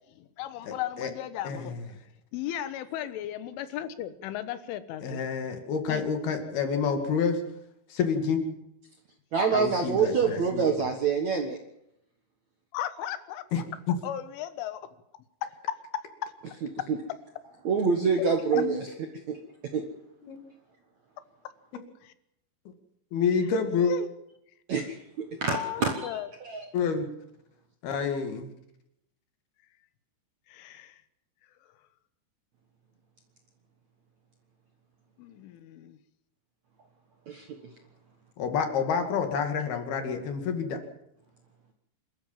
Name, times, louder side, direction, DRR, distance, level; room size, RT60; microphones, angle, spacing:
voice 1, 0.2-1.8 2.3-5.2 5.9-6.1 12.7-13.6 14.0-14.9 15.4-16.3 18.5-18.6 22.0-22.1 23.9-24.1 25.5-26.3 30.5-31.0 35.2-36.0, left 11 dB, 90° left, 13 dB, 3.7 m, -36 dB
voice 2, 0.7-1.1 1.4-1.8 5.0-7.4 7.9-8.4 9.5-10.7 13.5-13.6 13.9-14.0 18.5-18.8 20.2-20.4 23.1-23.9 26.7-27.1 27.8-28.5 38.4-40.8, left 6 dB, 60° left, 6 dB, 3.9 m, -28 dB
voice 3, 9.3-11.6 16.6-17.0 17.6-18.9 19.3-19.4 19.7-19.8 24.7-26.7 37.3-37.6, right 5 dB, 60° right, 4 dB, 1.9 m, -27 dB
27.0 x 13.5 x 7.4 m, 0.81 s
omnidirectional pair, 5.4 m